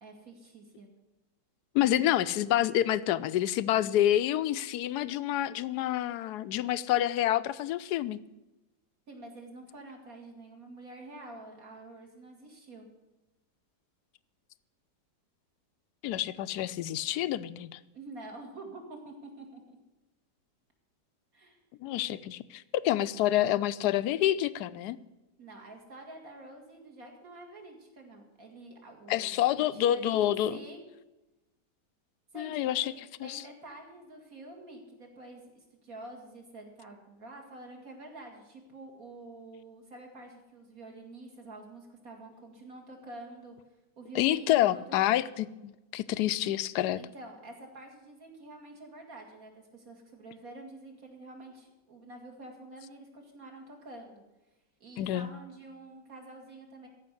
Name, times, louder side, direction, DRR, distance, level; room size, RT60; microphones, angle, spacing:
voice 1, 0.0-0.9 9.1-12.9 17.9-19.8 21.3-21.6 25.4-30.8 32.3-43.6 44.0-44.8 47.0-54.2 54.8-56.9, right 2 dB, 55° right, 1 dB, 2.9 m, -48 dB
voice 2, 1.7-8.2 16.0-17.8 21.8-25.0 29.1-30.6 32.4-32.9 33.2-33.4 44.1-47.0 55.0-55.3, left 12 dB, 75° left, 15 dB, 1.1 m, -28 dB
14.5 x 5.8 x 9.7 m, 1.0 s
omnidirectional pair, 1.9 m